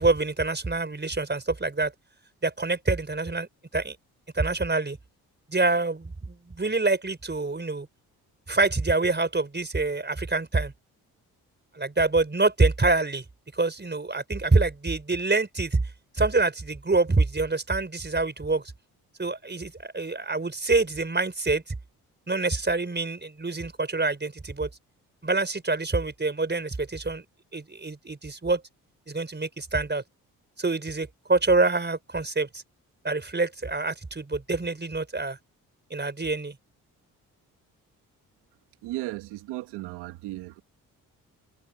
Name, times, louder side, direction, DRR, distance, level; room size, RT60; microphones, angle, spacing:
voice 1, 0.0-1.9 2.4-3.5 3.7-4.0 4.3-5.0 5.5-7.9 8.5-10.7 11.7-13.2 13.5-15.8 16.1-18.6 19.2-21.7 22.3-24.7 25.2-27.2 27.5-28.6 29.1-30.0 30.6-32.6 33.0-35.4 35.9-36.5, right 3 dB, 25° right, 5.1 m, -26 dB
voice 2, 38.8-40.6, right 18 dB, 85° right, 1.7 m, -35 dB
hypercardioid pair, 45°, 39 cm